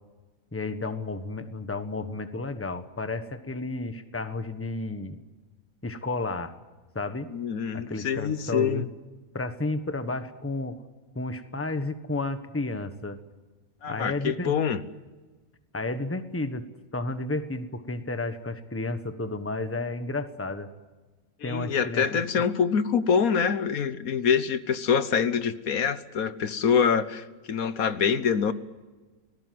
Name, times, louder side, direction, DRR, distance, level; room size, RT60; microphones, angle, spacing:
voice 1, 0.5-5.2 5.8-6.6 6.9-7.3 7.7-8.9 9.3-10.8 11.1-13.2 13.9-14.6 15.7-16.7 16.9-20.7 21.4-22.2, left 2 dB, 10° left, 9 dB, 1.3 m, -32 dB
voice 2, 7.3-8.9 13.8-14.8 21.4-28.5, left 7 dB, 75° left, 13 dB, 1.5 m, -25 dB
26.5 x 19.0 x 7.8 m, 1.3 s
omnidirectional pair, 1.5 m